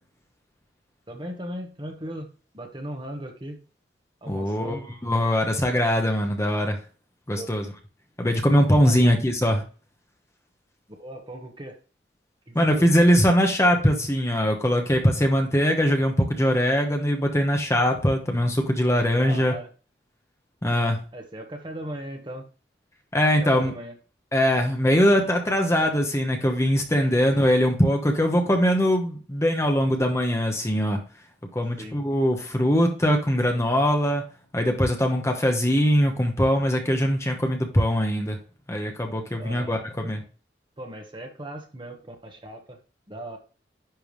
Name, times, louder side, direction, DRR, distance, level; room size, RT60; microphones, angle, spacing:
voice 1, 1.1-3.6 4.2-4.8 7.4-7.5 8.8-9.1 11.0-11.8 12.5-12.9 19.1-19.7 21.1-22.5 23.4-23.9 27.0-27.2 31.8-32.0 39.4-39.8 40.8-42.8 43.1-43.4, right 1 dB, 30° right, 3 dB, 1.2 m, -38 dB
voice 2, 4.3-6.8 7.3-7.7 8.2-9.6 12.5-19.5 20.6-21.0 23.1-23.7 24.3-31.0 31.5-34.2 34.5-38.4 38.7-40.2, equal, 15° left, 3 dB, 1.0 m, -22 dB
10.5 x 3.5 x 3.1 m, 0.36 s
head